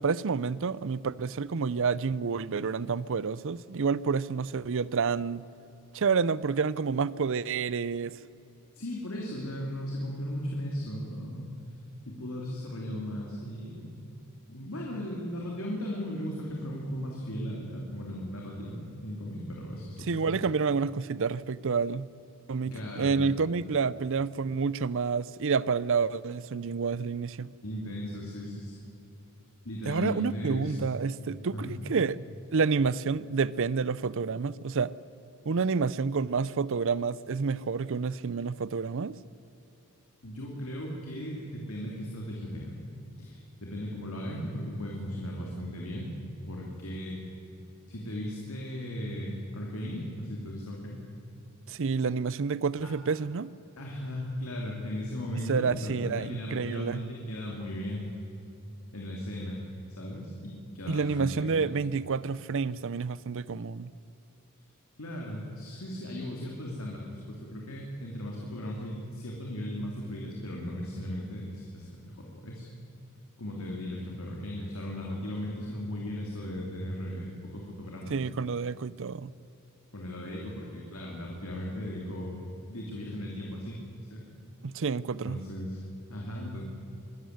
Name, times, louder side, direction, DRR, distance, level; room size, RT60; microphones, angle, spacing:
voice 1, 0.0-5.5 5.9-8.2 20.1-22.1 22.5-27.5 29.9-32.2 32.5-34.9 35.5-39.2 51.7-53.5 55.5-57.0 60.9-63.9 78.1-79.3 84.6-85.4, right 5 dB, 60° right, 0.6 m, -29 dB
voice 2, 8.7-11.5 12.0-14.0 14.5-20.4 22.7-23.2 27.6-28.8 29.6-31.0 31.5-31.8 40.2-42.8 43.2-46.1 46.4-47.2 47.9-51.1 53.8-58.1 58.9-59.6 59.9-61.7 65.0-72.6 73.4-78.2 79.9-82.4 82.7-83.8 84.1-84.4 85.2-85.8 86.1-86.6, equal, 70° left, 3.0 m, -37 dB
23.5 x 13.0 x 9.4 m
head